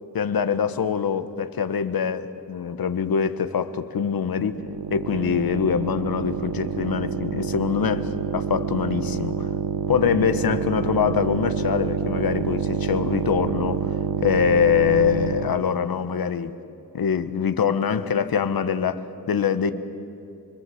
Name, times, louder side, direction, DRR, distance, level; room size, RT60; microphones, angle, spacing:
voice 1, 0.1-4.6 4.9-9.5 9.9-13.9 14.2-16.5 16.9-19.7, left 7 dB, 85° left, 11 dB, 1.2 m, -24 dB
sound 1, 4.5-15.7, right 7 dB, 80° right, 0.9 m, -27 dB
25.5 x 24.5 x 7.7 m, 2.7 s
wide cardioid pair, 125°, 35 cm